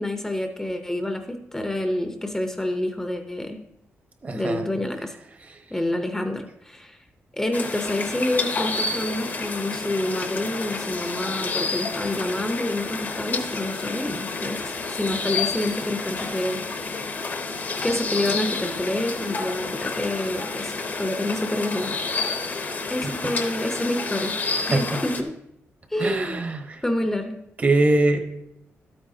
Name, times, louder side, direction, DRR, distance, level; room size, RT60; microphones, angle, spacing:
voice 1, 0.0-3.6 4.3-5.1 5.7-7.0 7.3-17.0 17.8-22.0 22.9-24.4 24.7-25.3 25.9-26.4 26.8-27.4, left 1 dB, 10° left, 5 dB, 0.7 m, -28 dB
voice 2, 4.2-4.6 23.0-23.1 24.7-25.0 26.0-26.8 27.6-28.2, right 2 dB, 35° right, 6 dB, 1.0 m, -22 dB
sound 1, 7.5-25.2, left 4 dB, 40° left, 0.8 m, -29 dB
12.0 x 8.8 x 2.7 m, 0.81 s
cardioid pair, 125°, 5 cm